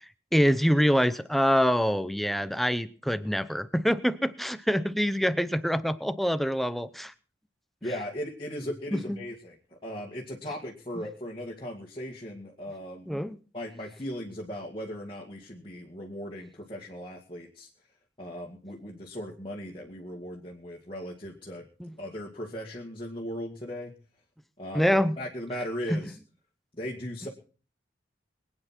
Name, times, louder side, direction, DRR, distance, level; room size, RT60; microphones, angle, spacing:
voice 1, 0.3-7.1 8.9-9.2 13.1-13.4 21.8-21.9 24.7-25.1 25.9-26.0, equal, ahead, 13 dB, 0.7 m, -25 dB
voice 2, 7.8-9.6 9.8-13.2 13.5-17.7 18.2-21.7 22.0-23.9 24.6-24.9 25.2-26.2 26.8-27.3, equal, 30° left, -3 dB, 2.0 m, -37 dB
23.5 x 9.1 x 4.4 m, 0.38 s
head